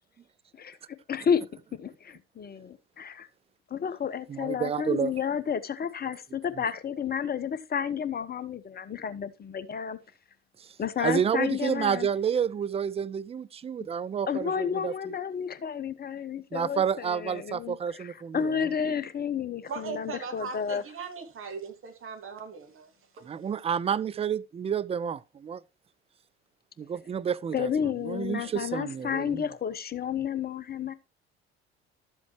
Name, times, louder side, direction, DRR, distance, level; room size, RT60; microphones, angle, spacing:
voice 1, 1.1-1.5 1.8-3.3 3.7-10.0 10.8-12.1 14.3-20.8 27.5-30.9, left 7 dB, 30° left, 1.1 m, -31 dB
voice 2, 4.3-5.1 11.0-14.9 16.5-18.5 23.3-25.6 26.8-27.7 28.0-29.5, right 7 dB, 20° right, 0.4 m, -29 dB
voice 3, 19.7-23.2, right 5 dB, 40° right, 2.7 m, -39 dB
12.5 x 7.6 x 3.1 m
figure-of-eight pair, 60°, 32 cm